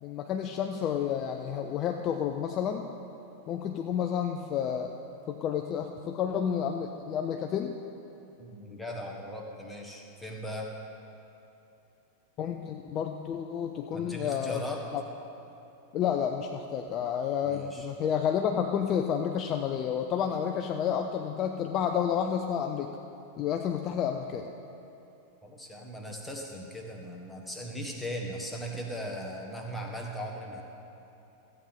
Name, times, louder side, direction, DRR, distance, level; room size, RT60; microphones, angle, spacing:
voice 1, 0.0-2.9 3.5-4.9 5.3-7.8 12.4-14.6 14.9-15.0 15.9-22.9 23.4-24.5, left 8 dB, 35° left, 4 dB, 0.5 m, -30 dB
voice 2, 8.4-10.7 13.9-14.9 17.5-17.9 25.4-30.6, equal, 5° left, 0 dB, 1.4 m, -38 dB
14.5 x 8.8 x 3.7 m, 2.9 s
figure-of-eight pair, 90°, 0 cm